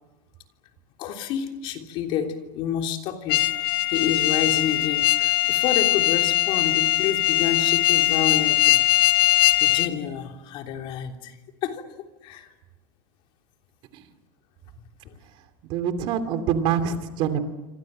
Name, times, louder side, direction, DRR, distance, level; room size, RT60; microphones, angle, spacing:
voice 1, 1.0-3.5 3.9-8.8 9.6-11.4 11.6-11.9 12.2-12.5, left 8 dB, 45° left, 4 dB, 3.3 m, -29 dB
sound 1, 3.3-9.9, left 17 dB, 80° left, 1.7 m, -21 dB
voice 2, 15.6-17.4, right 8 dB, 45° right, 9 dB, 2.8 m, -25 dB
27.0 x 26.0 x 7.7 m, 1.1 s
supercardioid pair, 155°, 12 cm